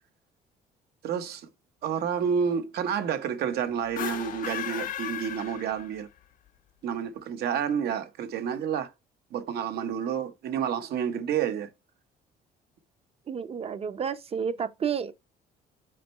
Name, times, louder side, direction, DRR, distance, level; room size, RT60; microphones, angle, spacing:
voice 1, 1.0-1.5 1.8-6.1 6.8-8.9 9.3-11.7, right 8 dB, 70° right, 1.0 m, -29 dB
sound 1, 3.8-6.2, left 10 dB, 55° left, 0.5 m, -35 dB
voice 2, 13.3-15.1, right 7 dB, 35° right, 0.7 m, -31 dB
5.2 x 5.1 x 4.3 m
cardioid pair, 110°, 17 cm